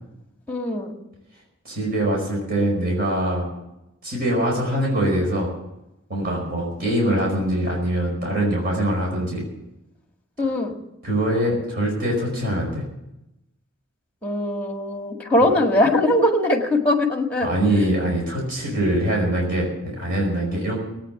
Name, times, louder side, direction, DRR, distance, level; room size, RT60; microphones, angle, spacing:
voice 1, 0.5-0.9 10.4-10.7 14.2-17.5, left 1 dB, 5° left, 3 dB, 1.9 m, -21 dB
voice 2, 1.6-3.5 4.0-5.5 6.1-9.4 11.0-12.8 15.4-15.5 17.4-20.8, right 1 dB, 45° right, -2 dB, 5.1 m, -23 dB
18.5 x 9.1 x 7.8 m, 0.91 s
head